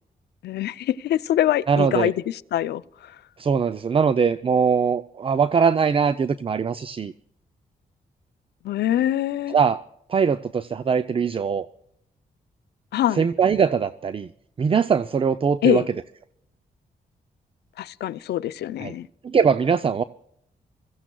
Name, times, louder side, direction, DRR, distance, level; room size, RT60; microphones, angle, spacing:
voice 1, 0.4-3.2 8.6-9.6 12.9-13.2 15.6-15.9 17.8-19.1, left 12 dB, 90° left, 0.5 m, -24 dB
voice 2, 1.7-2.1 3.4-7.1 9.5-9.8 10.1-11.7 13.2-14.3 14.6-15.8 18.8-18.9 19.2-20.0, right 6 dB, 35° right, 0.4 m, -21 dB
25.5 x 15.0 x 2.3 m
cardioid pair, 75°, 17 cm